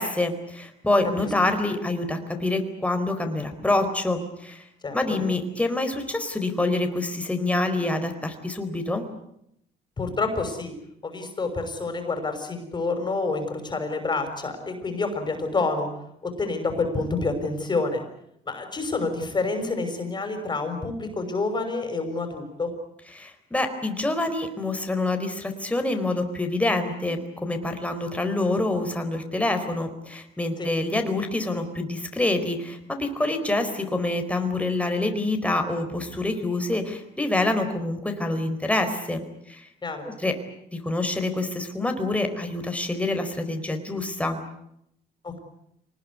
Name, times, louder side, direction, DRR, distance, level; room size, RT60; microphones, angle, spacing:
voice 1, 0.0-4.6 4.9-9.0 23.1-39.7 40.0-40.3 40.7-44.4, left 2 dB, 10° left, 6 dB, 4.5 m, -26 dB
voice 2, 4.8-5.2 10.0-10.7 11.0-15.9 16.2-18.0 18.5-22.7 30.6-30.7 39.8-40.0 45.2-45.4, left 3 dB, 25° left, 6 dB, 6.0 m, -28 dB
26.0 x 20.0 x 9.7 m, 0.76 s
cardioid pair, 110°, 17 cm